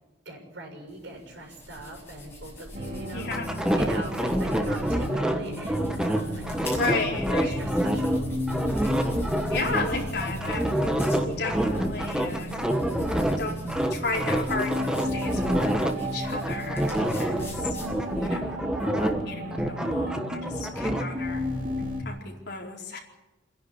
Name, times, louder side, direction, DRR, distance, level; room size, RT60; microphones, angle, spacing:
voice 1, 0.2-3.3 3.7-8.3, right 1 dB, 70° right, 3 dB, 6.5 m, -41 dB
sound 1, 0.9-18.4, left 1 dB, 15° left, 6.9 m, -44 dB
sound 2, 2.7-22.0, equal, 40° right, 4.0 m, -34 dB
voice 2, 3.1-3.5 6.7-7.6 9.5-10.8 11.2-12.5 13.4-13.6 13.9-17.8 18.1-21.4 22.0-23.0, left 3 dB, 60° left, -1 dB, 4.5 m, -33 dB
sound 3, 3.3-8.2 8.5-13.4 13.7-15.9 16.2-19.3 19.5-21.0, equal, 5° right, 1.4 m, -27 dB
27.0 x 11.0 x 10.0 m, 1.0 s
head